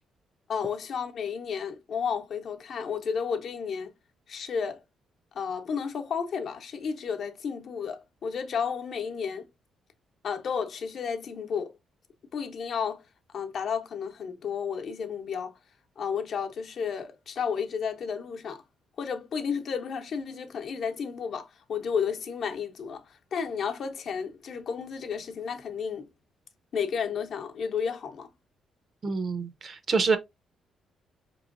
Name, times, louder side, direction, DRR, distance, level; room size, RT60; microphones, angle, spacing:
voice 1, 0.5-3.9 4.3-4.8 5.3-9.4 10.2-11.7 12.3-13.0 13.3-15.6 16.0-18.6 19.0-23.0 23.3-26.1 26.7-28.3, left 6 dB, 60° left, 0.7 m, -32 dB
voice 2, 29.0-30.2, right 4 dB, 40° right, 0.6 m, -26 dB
4.4 x 3.0 x 2.4 m
cardioid pair, 90°, 0 cm